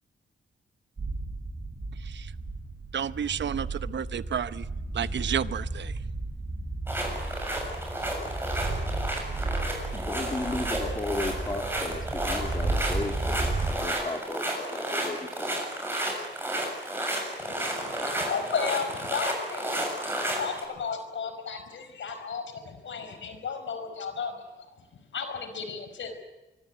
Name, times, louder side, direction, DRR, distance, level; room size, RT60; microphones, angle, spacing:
sound 1, 1.0-13.8, right 2 dB, 35° right, 5.4 m, -33 dB
voice 1, 1.9-2.3 2.9-4.7 4.9-6.0, right 8 dB, 70° right, 0.8 m, -31 dB
sound 2, 6.9-20.6, right 1 dB, 10° right, 7.1 m, -32 dB
voice 2, 9.9-15.8, left 2 dB, 20° left, 2.5 m, -35 dB
voice 3, 17.4-24.4 25.1-26.2, left 6 dB, 80° left, 4.9 m, -34 dB
24.5 x 22.5 x 9.3 m
wide cardioid pair, 150°, 19 cm